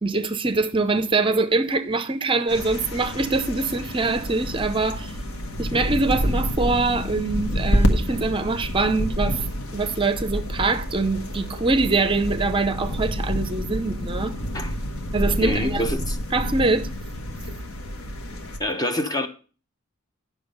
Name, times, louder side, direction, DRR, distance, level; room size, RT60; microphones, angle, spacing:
voice 1, 0.0-5.1 5.6-9.4 9.7-14.4 15.1-15.9 16.3-16.9, right 3 dB, 25° right, 0.6 m, -23 dB
sound 1, 2.5-18.6, equal, 75° left, 1.3 m, -28 dB
voice 2, 15.4-16.2 18.6-19.3, left 1 dB, 20° left, 0.9 m, -26 dB
10.5 x 6.4 x 5.3 m
head